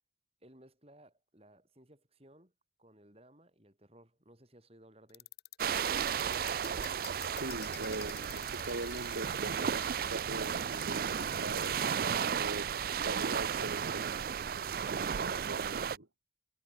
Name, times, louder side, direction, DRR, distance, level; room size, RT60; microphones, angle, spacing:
voice 1, 0.4-2.5 2.8-5.3, right 1 dB, 30° right, 6.6 m, -60 dB
sound 1, 5.1-12.0, left 11 dB, 55° left, 4.1 m, -50 dB
sound 2, 5.6-16.0, right 7 dB, 50° right, 0.4 m, -34 dB
voice 2, 7.4-11.8 12.4-12.7 13.0-14.2 15.2-16.1, right 2 dB, 85° right, 2.8 m, -41 dB
head